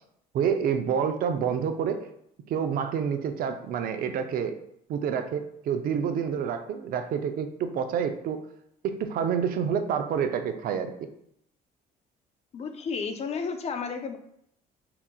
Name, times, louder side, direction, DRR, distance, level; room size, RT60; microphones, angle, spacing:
voice 1, 0.3-2.0 2.5-4.5 4.9-8.4 8.8-10.9, right 7 dB, 60° right, 8 dB, 0.5 m, -28 dB
voice 2, 12.5-14.2, left 5 dB, 40° left, 7 dB, 0.5 m, -32 dB
4.7 x 2.9 x 2.2 m, 0.72 s
cardioid pair, 110°, 17 cm